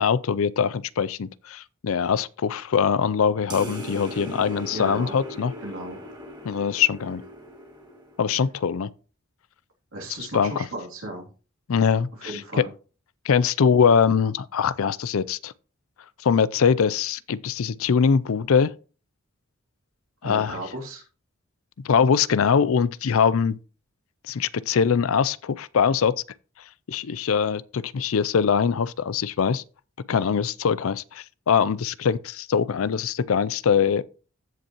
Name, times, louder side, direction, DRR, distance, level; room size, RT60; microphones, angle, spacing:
voice 1, 0.0-5.5 6.4-7.2 8.2-8.9 10.3-10.7 11.7-12.7 13.2-15.5 16.2-18.7 20.2-20.6 21.8-23.6 24.3-26.2 26.9-29.6 30.1-34.0, left 6 dB, 75° left, 0.4 m, -22 dB
sound 1, 3.5-8.4, equal, 20° right, 2.4 m, -39 dB
voice 2, 4.7-5.2 5.6-6.1 9.9-11.3 12.2-12.7 20.2-21.0, right 1 dB, 75° right, 2.8 m, -35 dB
15.0 x 5.4 x 3.0 m
head